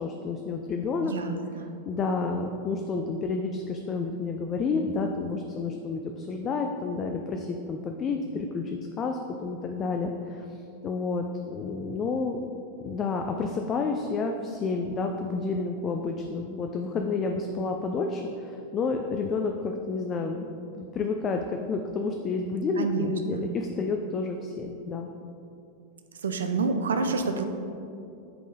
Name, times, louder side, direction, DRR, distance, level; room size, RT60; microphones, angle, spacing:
voice 1, 0.0-1.1 1.8-10.4 10.8-12.4 12.8-20.4 20.7-25.1, left 4 dB, 30° left, 3 dB, 0.4 m, -30 dB
voice 2, 1.0-1.7 22.8-23.4 26.2-27.4, right 4 dB, 65° right, 7 dB, 0.5 m, -28 dB
8.4 x 3.7 x 3.9 m, 2.6 s
figure-of-eight pair, 90°, 0 cm